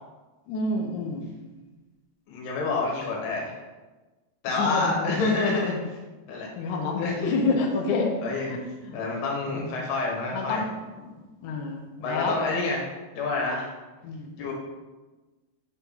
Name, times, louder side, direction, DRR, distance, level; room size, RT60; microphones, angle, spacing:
voice 1, 0.5-1.2 4.5-5.2 6.4-8.2 8.5-8.6 8.8-9.0 9.5-9.7 10.3-10.7 11.0-11.1 11.4-12.4 14.0-14.3, left 3 dB, 85° left, 1 dB, 1.7 m, -28 dB
voice 2, 2.3-3.5 4.4-6.0 6.3-7.5 8.2-8.5 8.9-10.6 12.0-12.8 13.1-13.7 14.4-14.5, left 3 dB, 70° left, -2 dB, 3.5 m, -28 dB
6.9 x 4.5 x 5.7 m, 1.2 s
omnidirectional pair, 5.0 m